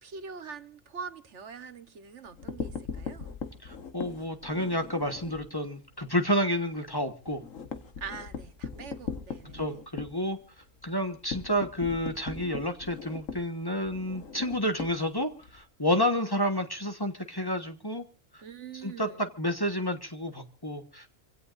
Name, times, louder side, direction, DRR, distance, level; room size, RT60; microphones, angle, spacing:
voice 1, 0.0-3.4 8.0-9.8 18.4-19.2, right 6 dB, 65° right, 1.4 m, -43 dB
sound 1, 2.2-5.5 5.8-6.0 6.3-6.4 6.7-15.6, left 6 dB, 85° left, 1.8 m, -40 dB
voice 2, 3.6-7.4 9.5-10.4 10.8-18.0 18.3-18.4 18.8-21.1, equal, 20° left, 1.3 m, -30 dB
26.5 x 17.0 x 2.6 m
omnidirectional pair, 1.3 m